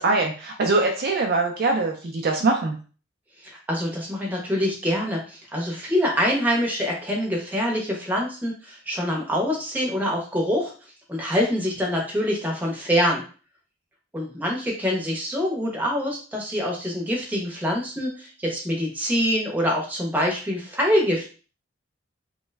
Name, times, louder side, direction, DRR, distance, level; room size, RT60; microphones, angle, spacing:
voice 1, 0.0-2.8, right 3 dB, 45° right, 2 dB, 0.4 m, -22 dB
voice 2, 3.4-10.7 11.1-13.2 14.1-21.3, equal, 10° right, -2 dB, 0.7 m, -25 dB
3.0 x 2.2 x 3.2 m, 0.37 s
head